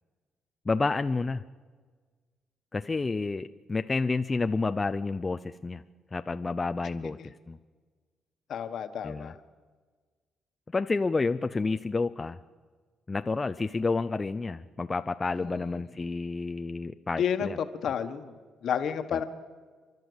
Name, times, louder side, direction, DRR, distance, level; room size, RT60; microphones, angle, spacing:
voice 1, 0.7-1.4 2.7-5.8 6.1-7.2 7.5-7.6 9.0-9.3 10.7-12.4 13.1-17.6 19.1-19.2, left 3 dB, 25° left, 9 dB, 0.5 m, -29 dB
voice 2, 8.5-9.4 15.4-15.5 17.2-17.5 17.8-18.3 18.6-19.2, left 8 dB, 65° left, 9 dB, 1.4 m, -30 dB
29.5 x 12.5 x 8.1 m, 1.5 s
cardioid pair, 110°, 0 cm